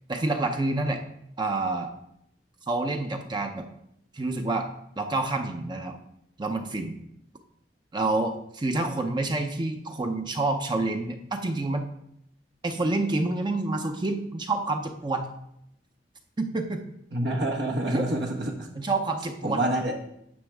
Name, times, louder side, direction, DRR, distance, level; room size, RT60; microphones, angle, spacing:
voice 1, 0.1-1.0 1.4-1.9 2.7-3.7 4.1-4.7 5.0-6.0 6.4-7.0 7.9-11.9 12.6-15.3 16.4-16.8 17.9-18.0 18.8-19.6, right 2 dB, 25° right, 4 dB, 0.6 m, -28 dB
voice 2, 17.1-18.7 19.4-19.9, right 1 dB, 70° right, 2 dB, 1.2 m, -27 dB
9.6 x 6.3 x 3.4 m, 0.76 s
head